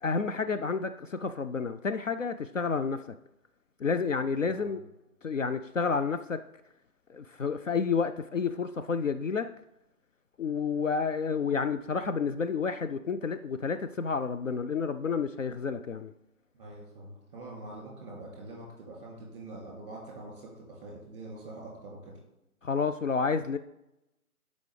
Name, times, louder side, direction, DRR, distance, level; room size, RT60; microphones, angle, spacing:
voice 1, 0.0-3.2 3.8-4.8 5.2-6.4 7.1-9.5 10.4-16.1 22.6-23.6, left 5 dB, 60° left, 9 dB, 0.5 m, -30 dB
voice 2, 4.4-4.8 16.5-22.1, right 2 dB, 20° right, -1 dB, 2.5 m, -45 dB
12.5 x 5.2 x 3.3 m, 0.88 s
figure-of-eight pair, 155°, 45 cm